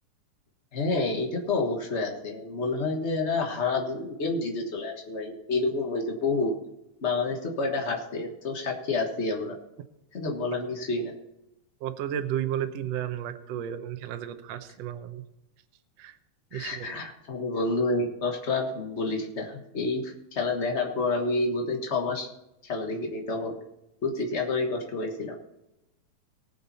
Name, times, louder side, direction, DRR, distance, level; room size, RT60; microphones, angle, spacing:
voice 1, 0.7-6.5 7.0-9.5 10.1-11.1 16.5-22.3 22.6-23.5 24.0-25.3, left 3 dB, 85° left, 1 dB, 0.6 m, -29 dB
voice 2, 11.8-15.2 16.0-16.2 16.5-17.0, right 10 dB, 70° right, 8 dB, 1.7 m, -33 dB
19.0 x 7.1 x 4.2 m, 0.90 s
omnidirectional pair, 3.6 m